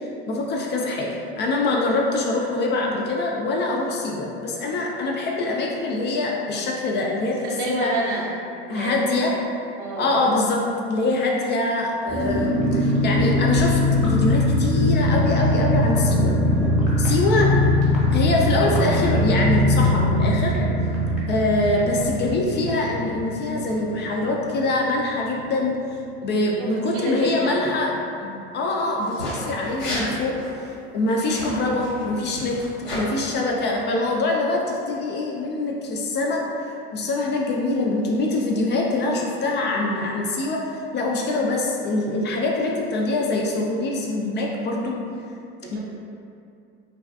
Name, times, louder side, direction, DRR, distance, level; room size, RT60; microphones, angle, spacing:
voice 1, 0.3-1.1 1.4-7.9 8.7-9.3 10.0-10.6 10.9-16.3 17.0-17.5 18.1-20.5 21.3-25.7 26.2-27.9 28.2-30.4 30.9-32.6 32.9-36.4 36.9-40.6 40.9-45.0 45.7-45.8, left 2 dB, 35° left, -1 dB, 0.4 m, -24 dB
voice 2, 7.4-8.3 8.7-9.0 9.8-10.2 21.7-21.8 26.2-27.7 45.6-45.8, right 2 dB, 65° right, -3 dB, 0.6 m, -29 dB
ambient bubbling liquid, 12.1-24.4 24.7-24.8 25.1-25.4, left 1 dB, ahead, 0.9 m, -21 dB
sound 1, 29.0-29.3 29.6-30.1 30.3-30.5 31.2-33.0, left 1 dB, 90° left, 1.1 m, -33 dB
2.3 x 2.3 x 2.3 m, 2.5 s
supercardioid pair, 90°, 29 cm